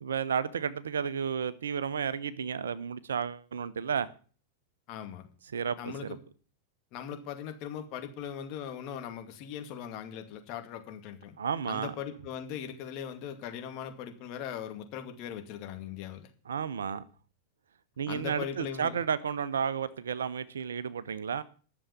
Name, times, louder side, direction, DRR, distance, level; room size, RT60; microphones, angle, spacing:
voice 1, 0.0-4.1 5.5-5.8 6.0-6.2 11.4-11.9 16.5-17.0 18.0-21.4, right 7 dB, 80° right, 0.9 m, -32 dB
voice 2, 4.9-5.3 5.8-6.2 6.9-11.4 11.6-16.3 18.1-19.0, left 9 dB, 50° left, 2.4 m, -39 dB
11.0 x 7.2 x 8.8 m
hypercardioid pair, 95°, 0 cm